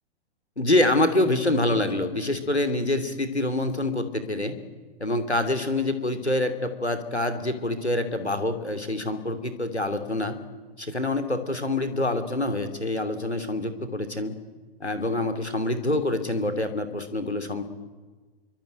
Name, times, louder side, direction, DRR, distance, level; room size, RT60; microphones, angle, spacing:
voice 1, 0.6-4.6 5.0-10.4 10.8-14.3 14.8-17.6, left 2 dB, 90° left, 8 dB, 2.9 m, -26 dB
26.0 x 24.0 x 9.2 m, 1.4 s
figure-of-eight pair, 110°, 32 cm